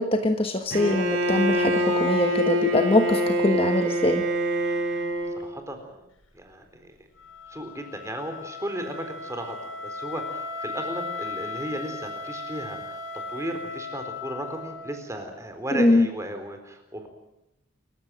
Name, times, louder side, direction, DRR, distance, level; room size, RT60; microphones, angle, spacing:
voice 1, 0.0-4.2 15.7-16.1, left 1 dB, 25° left, 6 dB, 1.3 m, -22 dB
Bowed string instrument, 0.7-5.5, equal, 75° right, 5.1 m, -25 dB
voice 2, 5.4-6.0 6.3-6.9 7.5-13.0 13.3-17.1, right 1 dB, 15° right, 6 dB, 4.0 m, -35 dB
Wind instrument woodwind instrument, 7.2-15.2, left 3 dB, 70° left, 7.3 m, -37 dB
28.5 x 15.0 x 9.3 m, 0.87 s
head